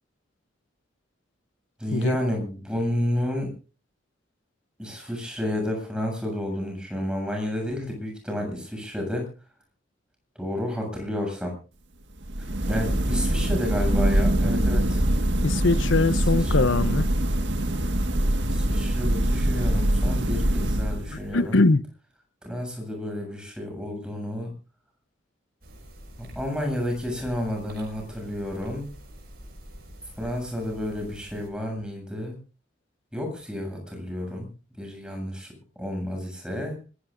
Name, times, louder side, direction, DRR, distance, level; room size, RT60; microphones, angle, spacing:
voice 1, 1.8-3.5 4.8-9.3 10.4-11.5 12.7-15.0 16.3-16.7 18.5-21.6 22.4-24.5 26.2-28.9 30.2-32.3 33.1-34.5 34.8-35.5 35.8-36.8, left 1 dB, 5° right, 7.7 m, -31 dB
sound 1, 12.2-21.3, right 1 dB, 75° right, 1.8 m, -23 dB
voice 2, 15.4-17.1 21.1-21.8, left 3 dB, 90° left, 0.8 m, -22 dB
sound 2, 25.6-31.5, equal, 55° right, 6.2 m, -46 dB
26.0 x 16.5 x 2.6 m
head